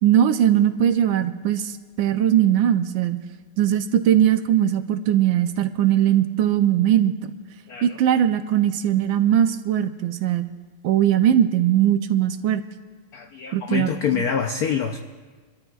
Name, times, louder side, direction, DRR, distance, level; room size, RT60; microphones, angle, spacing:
voice 1, 0.0-3.2 3.6-7.1 7.8-10.5 10.8-12.6 13.5-14.2, right 10 dB, 75° right, 9 dB, 1.2 m, -20 dB
voice 2, 13.1-15.0, left 7 dB, 85° left, 5 dB, 0.8 m, -26 dB
27.5 x 13.0 x 2.3 m, 1.5 s
omnidirectional pair, 2.4 m